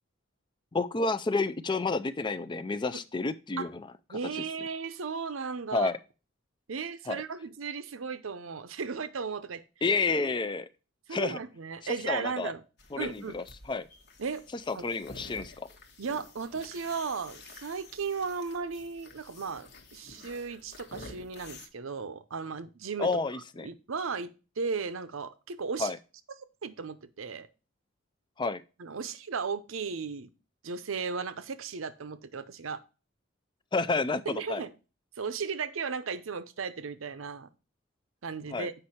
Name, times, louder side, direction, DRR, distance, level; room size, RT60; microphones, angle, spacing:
voice 1, 0.7-3.8 4.1-4.2 5.7-6.0 7.1-7.2 9.8-10.7 11.1-11.4 12.1-12.5 12.9-13.9 14.7-15.7 23.0-23.7 25.8-26.0 28.4-28.6 33.7-34.6 38.5-38.7, left 3 dB, 25° left, 0.4 m, -30 dB
voice 2, 4.1-5.9 6.7-9.6 10.2-10.3 11.1-12.6 13.0-13.4 14.2-14.4 14.7-14.9 16.0-23.1 23.6-25.9 26.6-27.5 28.8-30.3 30.6-32.8 34.3-34.7 35.2-37.5 38.2-38.7, right 5 dB, 75° right, 0.7 m, -35 dB
sound 1, 12.8-21.7, left 2 dB, 55° left, 1.2 m, -50 dB
7.9 x 5.4 x 4.2 m
head